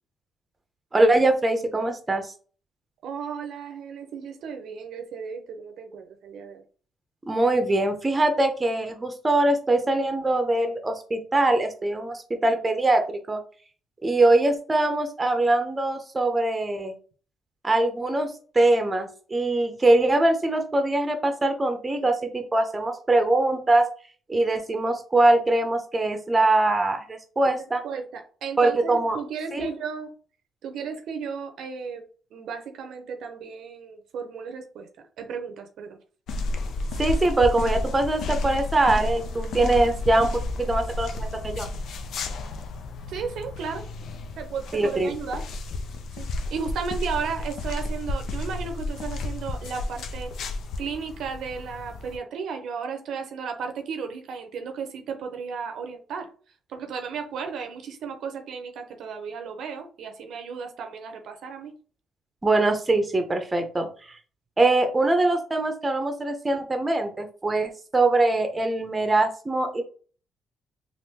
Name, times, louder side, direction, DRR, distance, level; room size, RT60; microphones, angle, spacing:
voice 1, 0.9-2.3 7.3-13.4 14.0-16.9 17.6-23.8 24.3-27.8 28.6-29.2 29.5-29.7 37.0-41.7 44.7-45.1 62.4-64.2 64.6-69.8, right 2 dB, 20° right, 6 dB, 0.7 m, -22 dB
voice 2, 3.0-6.6 27.4-30.1 30.6-32.0 32.3-34.9 35.2-36.0 43.1-43.8 44.4-45.4 46.1-56.3 56.7-61.7, right 6 dB, 75° right, 5 dB, 0.6 m, -34 dB
sound 1, 36.3-52.2, left 2 dB, 75° left, 0.5 m, -32 dB
3.4 x 2.5 x 2.8 m, 0.40 s
cardioid pair, 90°, 0 cm